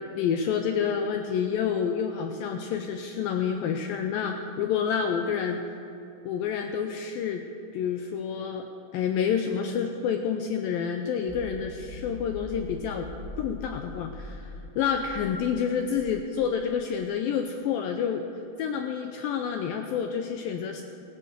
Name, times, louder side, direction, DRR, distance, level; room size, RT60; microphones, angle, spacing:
voice 1, 0.2-5.6 6.3-7.4 7.7-8.7 8.9-13.1 13.4-18.2 18.6-20.8, left 7 dB, 85° left, 5 dB, 2.1 m, -28 dB
sound 1, 11.3-16.6, left 2 dB, 50° right, 0.6 m, -42 dB
15.5 x 9.5 x 6.9 m, 2.9 s
omnidirectional pair, 4.7 m